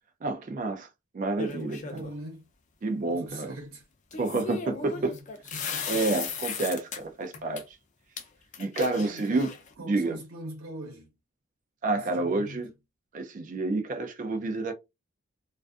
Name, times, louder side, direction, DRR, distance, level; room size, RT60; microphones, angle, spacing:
voice 1, 0.2-0.9 1.1-2.0 2.8-3.5 4.2-5.1 5.9-7.8 8.6-9.5 9.8-10.2 11.8-12.7 13.1-14.7, right 2 dB, 35° right, 0.3 m, -29 dB
sound 1, 1.4-2.1 4.1-7.0 7.3-7.6 8.2-8.3 8.5-9.7, left 6 dB, 35° left, 0.4 m, -36 dB
voice 2, 1.8-2.4 3.0-3.8 4.7-5.2 5.5-6.2 8.9-11.1 11.9-12.7, right 1 dB, 75° right, 0.9 m, -42 dB
2.4 x 2.3 x 2.2 m
head